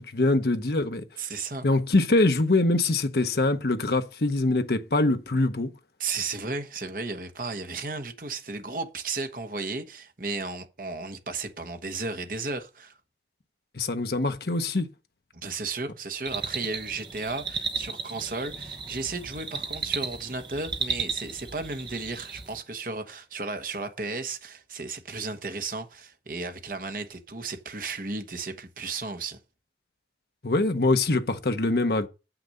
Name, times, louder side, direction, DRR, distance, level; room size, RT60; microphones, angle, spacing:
voice 1, 0.0-1.0 1.6-5.7 13.7-14.9 30.4-32.1, left 2 dB, 65° left, 0.9 m, -24 dB
voice 2, 1.2-1.7 6.0-12.9 15.3-29.4, right 3 dB, 50° right, 1.2 m, -34 dB
sound 1, 16.3-22.6, right 5 dB, 25° right, 0.8 m, -34 dB
7.8 x 6.0 x 6.5 m
head